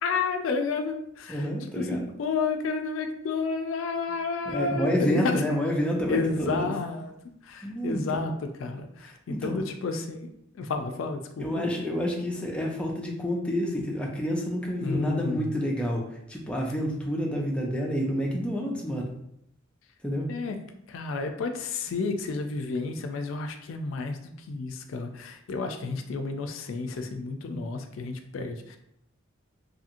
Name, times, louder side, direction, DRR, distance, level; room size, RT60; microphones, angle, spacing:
voice 1, 0.0-1.4 1.8-5.4 6.1-7.1 7.5-8.3 8.6-10.3 10.6-11.7 14.8-15.6 20.3-20.6 20.9-24.2 24.5-28.8, left 4 dB, 70° left, 6 dB, 0.4 m, -31 dB
voice 2, 1.3-2.1 4.5-6.7 7.6-8.3 9.0-9.6 11.4-19.1 20.0-20.3, equal, 5° left, -1 dB, 0.4 m, -29 dB
2.8 x 2.6 x 2.5 m, 0.74 s
head